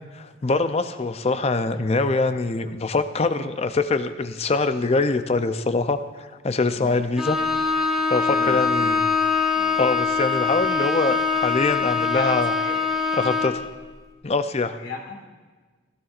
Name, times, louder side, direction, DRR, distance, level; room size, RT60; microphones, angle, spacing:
voice 1, 0.1-7.4 8.1-9.0 9.8-12.5 13.2-13.7 14.2-14.8, left 3 dB, 30° left, 10 dB, 0.5 m, -24 dB
Bowed string instrument, 7.2-13.7, left 5 dB, ahead, 0.9 m, -23 dB
voice 2, 8.3-8.9 9.5-9.8 12.1-12.8 14.8-15.3, left 2 dB, 70° left, 1 dB, 1.8 m, -37 dB
15.5 x 15.5 x 2.5 m, 1.4 s
head